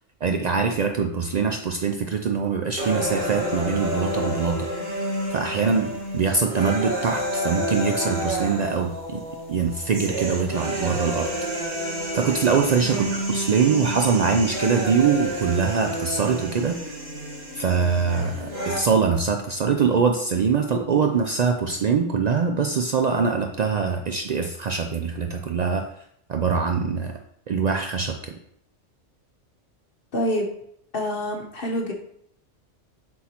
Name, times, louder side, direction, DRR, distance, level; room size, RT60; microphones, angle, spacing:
voice 1, 0.2-4.7 5.3-9.2 9.5-11.3 12.1-17.0 17.5-25.9 26.3-27.2 27.5-28.4, right 5 dB, 80° right, 4 dB, 0.3 m, -23 dB
sound 1, 2.8-18.8, right 1 dB, 55° right, 1.8 m, -30 dB
voice 2, 30.1-30.5 30.9-31.9, equal, 55° left, 2 dB, 1.0 m, -26 dB
7.3 x 4.5 x 2.9 m, 0.70 s
omnidirectional pair, 1.3 m